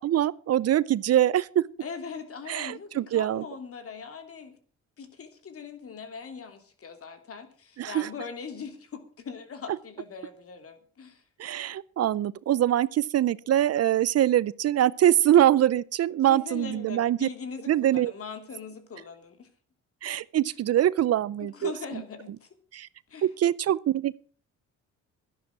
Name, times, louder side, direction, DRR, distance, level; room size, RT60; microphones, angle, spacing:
voice 1, 0.0-1.7 2.5-3.4 7.8-8.1 11.4-17.3 17.7-18.1 20.0-21.7 22.7-22.9 23.2-24.2, right 12 dB, 55° right, 0.6 m, -23 dB
voice 2, 1.8-4.6 5.0-11.2 16.3-19.5 20.5-20.6 21.4-22.5 23.1-23.3, left 5 dB, 50° left, 2.9 m, -41 dB
12.5 x 11.0 x 6.0 m
cardioid pair, 90°, 30 cm